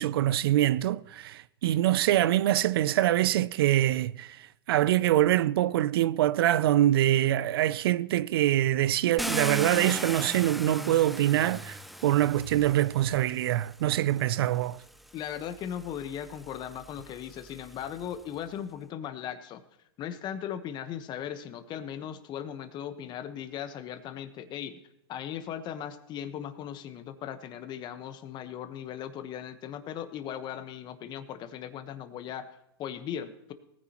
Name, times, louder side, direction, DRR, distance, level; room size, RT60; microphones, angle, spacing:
voice 1, 0.0-14.8, right 13 dB, 75° right, 0.4 m, -24 dB
Car, 9.2-13.3 14.2-14.3 14.9-18.2, equal, ahead, 0.5 m, -38 dB
voice 2, 15.1-19.6 20.0-24.8 25.1-33.5, left 9 dB, 35° left, 1.2 m, -38 dB
18.5 x 9.9 x 3.0 m
hypercardioid pair, 115°, 13 cm